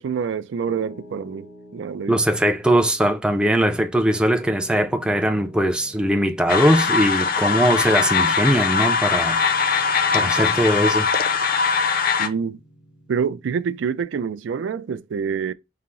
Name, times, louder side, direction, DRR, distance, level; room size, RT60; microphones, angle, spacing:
voice 1, 0.0-1.5 1.7-2.2 10.1-10.3 12.2-12.6 13.1-15.5, right 6 dB, 75° right, 0.3 m, -26 dB
Piano, 0.7-14.0, equal, 80° left, 1.1 m, -47 dB
voice 2, 2.1-9.4 10.1-11.1, right 1 dB, 5° right, 0.4 m, -20 dB
sound 1, 6.5-12.3, left 5 dB, 50° left, 0.5 m, -21 dB
5.6 x 2.0 x 3.6 m
head